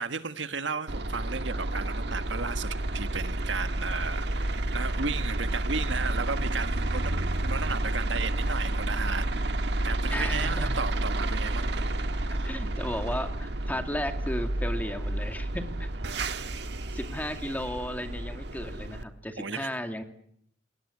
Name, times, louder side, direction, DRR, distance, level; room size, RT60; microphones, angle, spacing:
voice 1, 0.0-11.9 12.3-12.6 16.0-16.9 19.4-19.7, right 4 dB, 90° right, 10 dB, 1.6 m, -35 dB
sound 1, 0.9-19.0, right 1 dB, 65° right, 1.5 m, -30 dB
voice 2, 10.1-10.8 12.4-15.9 16.9-20.0, left 1 dB, 10° left, 6 dB, 2.4 m, -34 dB
27.5 x 20.5 x 8.5 m, 0.69 s
head